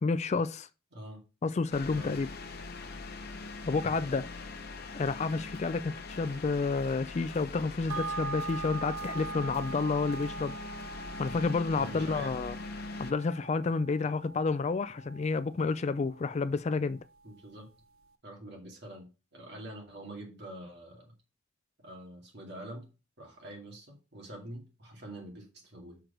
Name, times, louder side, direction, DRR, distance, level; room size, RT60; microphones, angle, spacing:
voice 1, 0.0-0.7 1.4-2.3 3.7-4.3 4.9-10.5 10.8-12.6 13.0-17.0, left 4 dB, 35° left, 0.3 m, -30 dB
voice 2, 0.9-1.2 1.9-2.2 3.8-4.0 11.7-12.4 17.2-17.7 18.2-21.1 21.8-22.9 23.2-26.0, right 1 dB, 55° right, 2.3 m, -45 dB
sound 1, 1.7-13.1, left 3 dB, 50° left, 0.8 m, -42 dB
sound 2, 7.9-16.6 17.0-17.1, right 4 dB, 80° right, 0.6 m, -42 dB
6.2 x 4.6 x 5.1 m
head